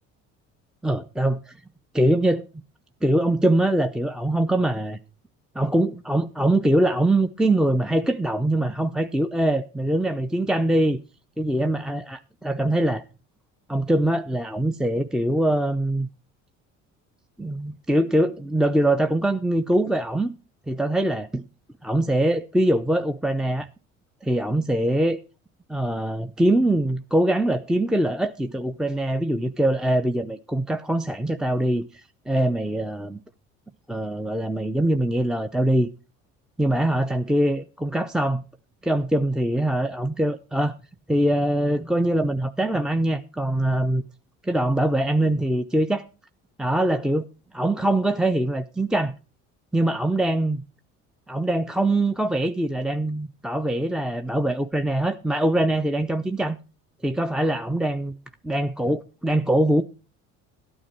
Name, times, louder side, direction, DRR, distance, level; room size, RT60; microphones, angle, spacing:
voice 1, 0.8-1.5 1.9-2.4 3.0-5.0 5.6-11.0 11.4-13.0 13.7-16.1 17.4-20.4 20.7-21.4 21.8-23.7 24.2-25.2 25.7-31.9 32.3-33.2 33.9-35.9 36.6-38.4 38.8-40.7 41.1-44.0 44.4-46.1 46.6-47.3 47.5-49.1 49.7-50.6 51.3-56.6 57.0-58.1 58.4-59.8, right 1 dB, ahead, 0.6 m, -23 dB
13.0 x 8.8 x 4.6 m
hypercardioid pair, 65°, 35 cm